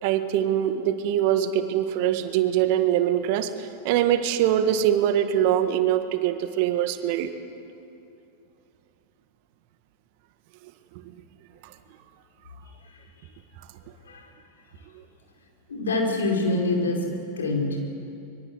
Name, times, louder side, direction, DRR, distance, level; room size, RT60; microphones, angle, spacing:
voice 1, 0.0-7.3, right 11 dB, 55° right, 9 dB, 1.7 m, -23 dB
voice 2, 15.7-17.0 17.4-17.7, left 2 dB, 80° left, 1 dB, 5.0 m, -25 dB
24.5 x 23.0 x 8.0 m, 2.7 s
figure-of-eight pair, 90°, 0 cm